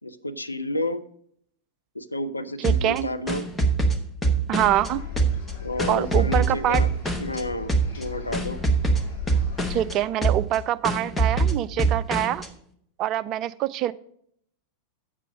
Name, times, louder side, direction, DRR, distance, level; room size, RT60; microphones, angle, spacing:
voice 1, 0.0-1.0 1.9-3.4 5.6-6.9 7.2-8.6, left 1 dB, 85° left, 8 dB, 0.6 m, -30 dB
sound 1, 2.6-4.9 5.2-7.4 7.7-8.0 8.3-9.9 10.2-10.6 10.8-12.5, right 3 dB, 10° left, 1.2 m, -23 dB
voice 2, 2.6-3.1 4.5-5.0 5.9-6.8 9.7-12.4 13.0-13.9, right 12 dB, 35° right, 15 dB, 0.4 m, -25 dB
sound 2, 4.6-9.9, left 6 dB, 55° left, 3.2 m, -37 dB
8.5 x 7.4 x 5.1 m, 0.66 s
figure-of-eight pair, 90°, 0 cm